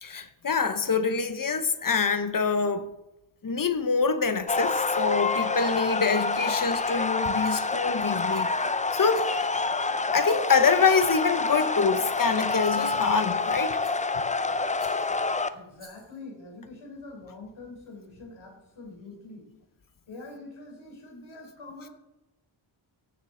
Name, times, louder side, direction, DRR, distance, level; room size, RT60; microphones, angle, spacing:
voice 1, 0.0-2.9 3.4-9.5 10.1-13.8 14.5-14.6, left 5 dB, 45° left, 0.8 m, -25 dB
sound 1, 4.5-15.5, left 3 dB, 15° left, 0.4 m, -27 dB
Rattle, 7.4-7.9 8.3-8.7 9.1-9.6 10.2-10.8 11.5-11.9 12.6-13.0 13.8-14.2 14.8-15.2 15.7-16.2, right 1 dB, 20° right, 2.9 m, -54 dB
voice 2, 15.5-19.5 20.1-21.9, left 2 dB, 75° left, 3.7 m, -44 dB
15.0 x 7.4 x 3.7 m
wide cardioid pair, 95°, 48 cm